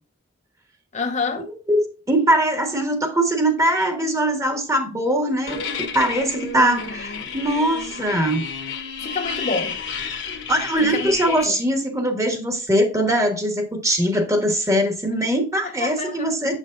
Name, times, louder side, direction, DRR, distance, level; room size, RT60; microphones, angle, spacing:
voice 1, 0.9-1.5 9.0-9.8 10.9-11.1 11.5-11.6 15.8-16.3, left 4 dB, 35° left, 0.6 m, -27 dB
voice 2, 1.7-8.4 10.5-16.6, right 1 dB, 15° right, 1.2 m, -21 dB
sound 1, 5.5-11.5, left 5 dB, 65° left, 1.1 m, -31 dB
7.2 x 6.3 x 2.5 m
head